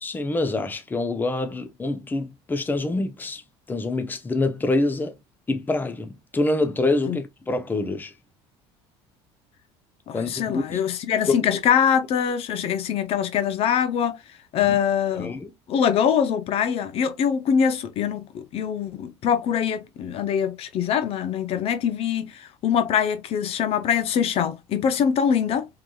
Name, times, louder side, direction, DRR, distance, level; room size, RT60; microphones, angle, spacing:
voice 1, 0.0-3.4 3.7-5.1 5.5-8.1 10.1-10.8 11.3-11.4 14.6-14.8 15.1-15.5, left 2 dB, 15° left, 0.9 m, -26 dB
voice 2, 10.1-14.2 14.5-15.4 15.7-25.7, left 8 dB, 50° left, 0.9 m, -23 dB
4.7 x 3.9 x 2.4 m
supercardioid pair, 110°, 12 cm